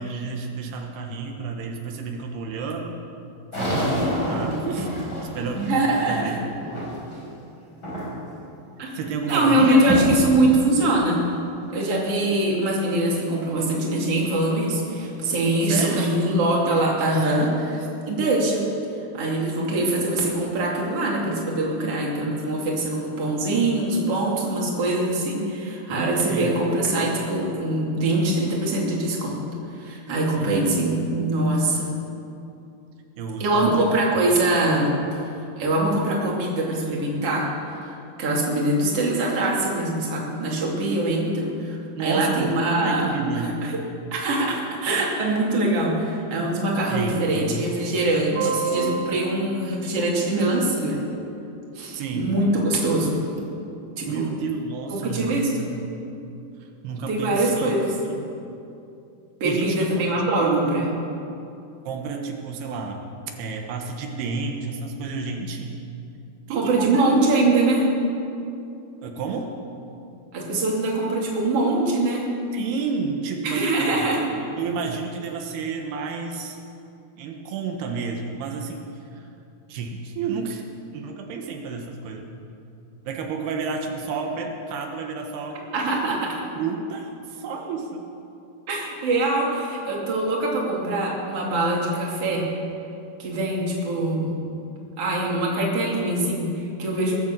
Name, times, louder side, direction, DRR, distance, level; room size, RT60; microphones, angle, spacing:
voice 1, 0.0-3.1 3.5-4.9 5.3-6.4 8.9-9.9 15.7-16.1 26.2-26.6 30.4-30.6 33.2-33.9 42.0-43.6 46.9-47.7 48.3-49.9 51.9-52.4 54.1-55.7 56.6-57.7 58.0-58.3 59.4-59.9 60.4-60.9 61.8-63.0 63.4-65.8 66.5-67.0 69.0-69.5 72.5-73.9 74.3-76.6 77.2-79.3 79.7-80.6 80.9-82.3 83.1-85.6 86.6-88.1, right 4 dB, 85° right, 2 dB, 3.3 m, -30 dB
sound 1, 3.5-7.3 7.8-8.4 8.7-9.4 9.8-10.2 10.8-10.9 11.6-11.7 14.2-14.3 14.8-15.4, equal, 25° left, 5.4 m, -28 dB
voice 2, 5.5-6.4 8.8-8.9 9.3-11.2 11.7-18.6 19.1-29.4 29.8-31.9 33.4-34.9 35.6-43.1 44.1-48.4 48.6-51.0 51.7-53.2 54.0-54.3 54.9-55.7 57.1-57.9 59.4-60.9 66.5-67.9 70.3-72.2 73.4-74.2 85.7-86.3 88.7-92.4 93.2-94.3 95.0-97.2, right 2 dB, 40° right, -3 dB, 3.4 m, -23 dB
20.0 x 9.6 x 7.5 m, 2.7 s
omnidirectional pair, 4.5 m